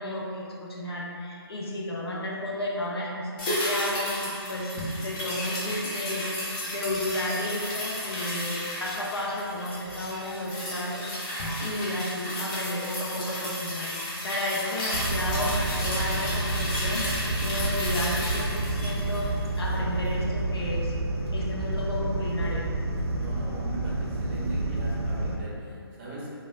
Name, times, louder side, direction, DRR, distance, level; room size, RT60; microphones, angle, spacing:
voice 1, 0.0-4.7 5.0-6.3 6.7-17.1 17.4-20.9 21.3-22.7, left 1 dB, 75° left, -4 dB, 0.6 m, -32 dB
sound 1, 3.4-19.9 20.2-20.3, left 1 dB, 20° left, 0.4 m, -33 dB
sound 2, 14.9-25.4, right 2 dB, 80° right, 0.5 m, -29 dB
voice 2, 23.2-26.3, right 1 dB, 25° right, -7 dB, 0.6 m, -38 dB
3.1 x 2.2 x 2.4 m, 2.4 s
figure-of-eight pair, 150°, 13 cm